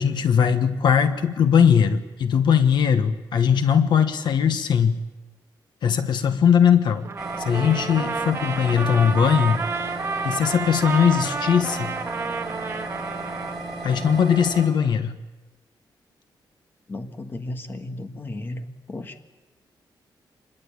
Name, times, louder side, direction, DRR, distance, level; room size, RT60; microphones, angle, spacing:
voice 1, 0.0-5.0 5.8-7.1 7.4-9.6 10.2-12.0 13.8-15.2, left 7 dB, 65° left, 9 dB, 1.3 m, -20 dB
Trumpet, 7.0-13.6, right 4 dB, 30° right, 1.6 m, -30 dB
sound 1, 7.2-14.7, right 2 dB, 5° right, 7.5 m, -34 dB
voice 2, 16.9-19.1, left 2 dB, 25° left, 7 dB, 1.5 m, -34 dB
26.5 x 21.5 x 8.7 m, 1.1 s
wide cardioid pair, 175°, 8 cm